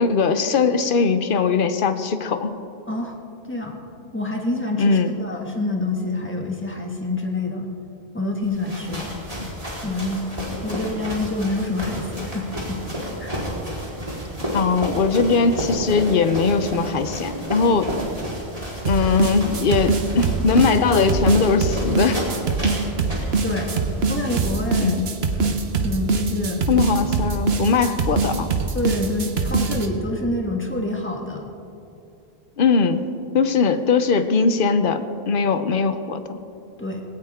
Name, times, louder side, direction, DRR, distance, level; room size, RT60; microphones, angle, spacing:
voice 1, 0.0-2.6 4.8-5.2 9.4-9.5 10.7-10.8 14.5-17.9 18.8-22.2 24.8-25.1 26.7-28.5 32.6-33.0 33.3-36.4, left 5 dB, 60° left, 10 dB, 1.0 m, -20 dB
voice 2, 3.4-3.8 4.1-7.7 8.1-9.2 9.8-10.2 10.6-12.8 13.2-13.4 23.4-23.7 24.1-25.0 25.4-26.6 28.7-31.4 36.8-37.0, left 2 dB, 10° left, 1 dB, 1.7 m, -27 dB
sound 1, 8.4-24.4, equal, 35° right, 4.0 m, -31 dB
sound 2, 18.9-29.9, right 4 dB, 80° right, 1.4 m, -23 dB
20.0 x 18.0 x 3.7 m, 2.6 s
omnidirectional pair, 1.1 m